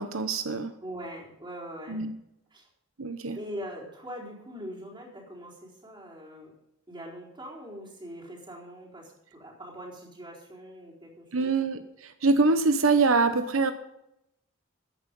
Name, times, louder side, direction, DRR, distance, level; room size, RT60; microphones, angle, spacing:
voice 1, 0.0-0.7 1.9-2.1 3.0-3.4 11.3-13.7, right 3 dB, 90° right, 9 dB, 0.9 m, -24 dB
voice 2, 0.8-2.1 2.5-2.7 3.3-6.5 6.9-11.6, equal, 25° right, -3 dB, 4.1 m, -42 dB
14.5 x 9.8 x 5.4 m, 0.82 s
head